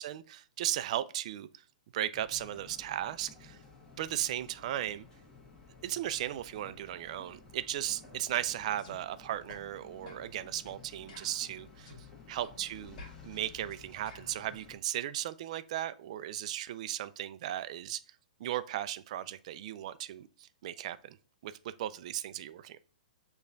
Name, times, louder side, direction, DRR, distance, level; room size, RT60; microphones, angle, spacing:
voice 1, 0.0-1.5 1.9-3.6 4.0-5.1 5.8-11.9 12.3-18.0 18.4-21.2 21.4-22.8, right 12 dB, 50° right, 0.3 m, -36 dB
sound 1, 2.1-14.8, left 5 dB, 15° left, 1.1 m, -54 dB
sound 2, 8.8-9.0 9.5-9.6 10.1-10.3 10.7-10.8 11.1-12.0 12.4-12.6 13.0-14.4, left 3 dB, 50° left, 1.8 m, -52 dB
6.5 x 2.3 x 2.6 m
hypercardioid pair, 125°, 5 cm